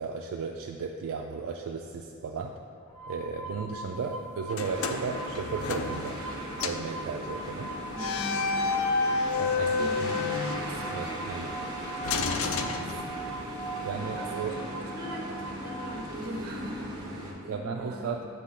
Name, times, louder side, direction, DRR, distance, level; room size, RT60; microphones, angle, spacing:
voice 1, 0.0-2.6 3.1-6.2 6.6-7.7 9.4-10.2 10.9-11.6 12.1-12.2 13.8-14.5 17.5-18.3, right 5 dB, 65° right, 1 dB, 0.3 m, -35 dB
sound 1, 2.9-16.0, right 1 dB, 20° left, 0.5 m, -41 dB
sound 2, 4.5-6.3 6.6-6.9 7.9-11.2 12.0-13.5, left 4 dB, 70° left, 0.4 m, -30 dB
sound 3, 4.6-17.3, right 1 dB, 20° right, 1.0 m, -39 dB
voice 2, 8.0-8.7 9.7-18.2, right 1 dB, 45° right, -1 dB, 0.9 m, -42 dB
7.3 x 3.2 x 5.7 m, 2.4 s
head